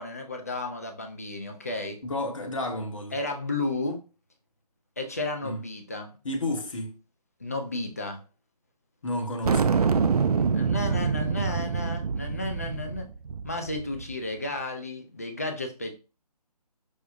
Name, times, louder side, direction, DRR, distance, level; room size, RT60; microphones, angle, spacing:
voice 1, 0.0-2.0 3.1-4.0 5.0-6.2 7.4-8.2 10.5-13.1 13.4-15.9, left 2 dB, 25° left, 0.3 m, -33 dB
voice 2, 2.0-3.2 5.4-5.6 6.2-7.0 9.0-9.8, left 1 dB, 50° left, 0.8 m, -31 dB
sound 1, 9.4-14.1, right 5 dB, 70° right, 0.4 m, -26 dB
4.9 x 2.0 x 2.6 m
figure-of-eight pair, 150°, 20 cm